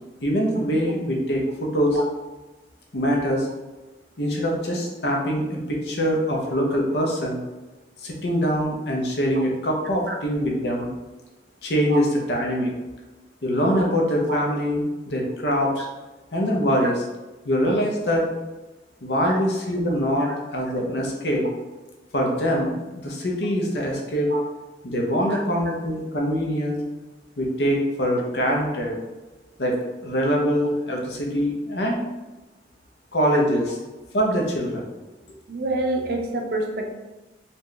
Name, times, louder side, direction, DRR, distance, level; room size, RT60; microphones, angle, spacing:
voice 1, 0.2-2.0 2.9-3.5 4.2-7.4 8.0-10.9 11.6-12.7 13.4-15.9 16.3-17.0 17.4-18.2 19.0-21.4 22.1-24.3 24.8-26.8 27.4-29.0 29.6-29.8 30.0-32.0 33.1-33.7 34.1-34.9, equal, 75° left, 0 dB, 0.7 m, -23 dB
voice 2, 35.5-36.9, right 2 dB, 55° right, 3 dB, 0.5 m, -27 dB
4.2 x 2.3 x 3.1 m, 1.1 s
head